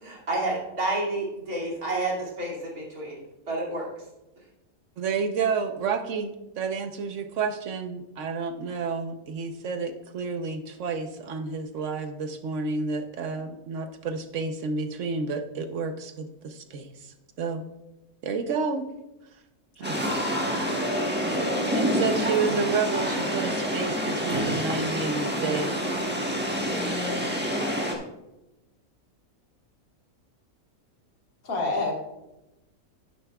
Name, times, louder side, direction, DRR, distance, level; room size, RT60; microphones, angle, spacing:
voice 1, 0.0-3.2 3.5-3.9, right 2 dB, 90° right, -4 dB, 3.0 m, -29 dB
voice 2, 5.0-17.7 18.2-18.8 19.8-20.0 21.7-25.7, right 4 dB, 60° right, 7 dB, 1.1 m, -30 dB
voice 3, 19.8-21.0 21.3-21.9 31.4-31.9, left 2 dB, 75° left, 0 dB, 2.2 m, -32 dB
sound 1, 19.8-28.0, equal, 10° right, 1.1 m, -27 dB
10.5 x 9.9 x 2.3 m, 0.96 s
omnidirectional pair, 1.5 m